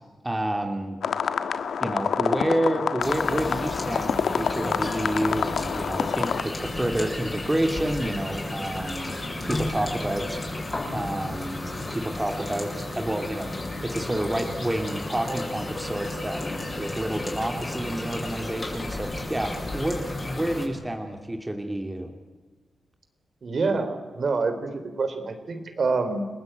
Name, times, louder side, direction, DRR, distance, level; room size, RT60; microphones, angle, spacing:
voice 1, 0.2-1.0 1.8-9.1 9.4-10.4 10.9-13.5 13.8-16.4 16.8-22.1, right 1 dB, 15° right, 4 dB, 2.4 m, -29 dB
sound 1, 1.0-6.4, left 7 dB, 80° left, 1.5 m, -27 dB
sound 2, 3.0-20.7, left 2 dB, 25° left, 7.8 m, -33 dB
voice 2, 23.4-26.3, right 4 dB, 55° right, 8 dB, 3.7 m, -27 dB
30.0 x 20.0 x 9.2 m, 1.3 s
cardioid pair, 95°, 0 cm